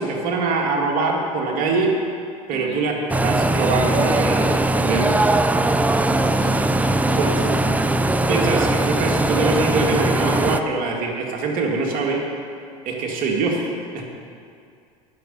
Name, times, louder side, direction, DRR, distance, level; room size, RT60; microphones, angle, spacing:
voice 1, 0.0-1.9 2.5-2.9 3.2-5.2 7.2-7.3 8.2-12.2 12.9-13.7 13.9-14.1, right 3 dB, 50° right, 0 dB, 2.0 m, -23 dB
sound 1, 3.1-10.6, right 2 dB, 10° right, 0.4 m, -20 dB
voice 2, 6.1-7.6, equal, 65° left, -3 dB, 3.1 m, -38 dB
9.3 x 6.5 x 8.5 m, 2.4 s
hypercardioid pair, 95°, 18 cm